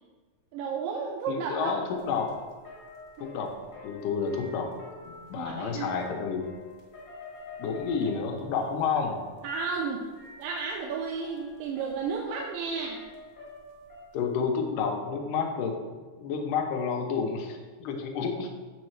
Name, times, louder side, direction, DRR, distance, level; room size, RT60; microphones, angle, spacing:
voice 1, 0.5-1.7 5.4-5.9 9.4-10.1 10.4-13.0, right 5 dB, 85° right, 1 dB, 2.2 m, -32 dB
voice 2, 1.3-2.3 3.2-3.5 3.8-4.7 5.1-6.5 7.6-9.2 14.1-15.8 16.2-18.5, left 5 dB, 80° left, 3 dB, 2.3 m, -30 dB
sound 1, 1.9-14.4, left 3 dB, 40° left, 1.9 m, -48 dB
7.8 x 5.3 x 3.2 m, 1.4 s
omnidirectional pair, 3.8 m